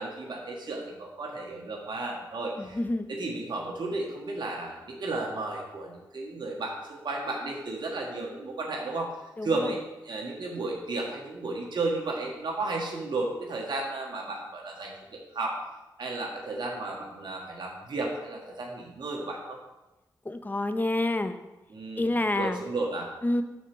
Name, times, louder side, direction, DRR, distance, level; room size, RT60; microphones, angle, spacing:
voice 1, 0.0-2.8 3.1-9.1 9.4-15.6 16.0-19.6 21.7-23.1, right 2 dB, 65° right, -1 dB, 1.5 m, -33 dB
voice 2, 2.6-3.1 9.4-9.7 20.3-21.4 22.0-22.6 23.2-23.4, left 2 dB, 20° left, 9 dB, 0.7 m, -28 dB
6.2 x 4.4 x 6.0 m, 1.1 s
supercardioid pair, 40°, 8 cm